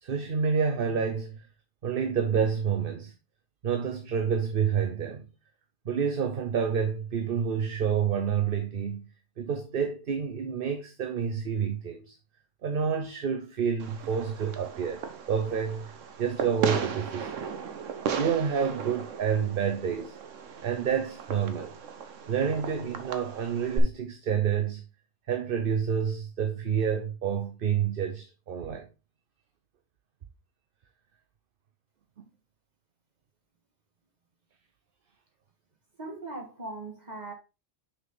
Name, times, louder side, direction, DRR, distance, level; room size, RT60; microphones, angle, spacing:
voice 1, 0.0-1.5 1.8-3.1 3.6-5.3 5.8-9.1 9.4-12.2 12.6-17.5 18.1-20.2 20.6-21.7 22.3-24.8 25.3-28.9 32.2-32.3, right 7 dB, 50° right, 0.9 m, -29 dB
Fireworks, 13.8-23.8, right 6 dB, 80° right, 1.2 m, -36 dB
voice 2, 36.0-37.3, right 2 dB, 35° right, 2.0 m, -39 dB
6.2 x 5.7 x 3.8 m
omnidirectional pair, 1.3 m